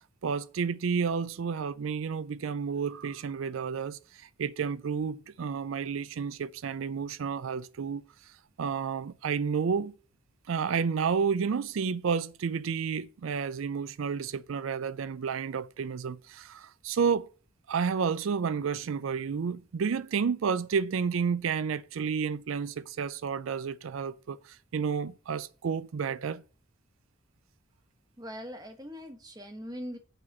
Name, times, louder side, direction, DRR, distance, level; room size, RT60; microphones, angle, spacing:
voice 1, 0.2-8.0 8.6-9.9 10.5-17.3 17.7-26.4, right 6 dB, 85° right, 0.4 m, -31 dB
voice 2, 28.2-30.0, equal, 20° right, 1.1 m, -41 dB
8.9 x 4.1 x 7.2 m
head